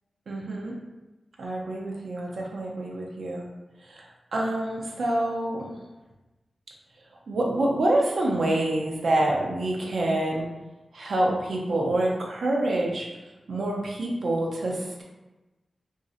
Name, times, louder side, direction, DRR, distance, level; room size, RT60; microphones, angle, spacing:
voice 1, 0.3-0.7 1.4-3.5 3.8-4.0 4.3-5.7 7.3-10.4 10.9-13.1 13.5-15.0, right 1 dB, 80° right, -2 dB, 0.5 m, -26 dB
2.5 x 2.0 x 2.6 m, 1.1 s
cardioid pair, 55°, 0 cm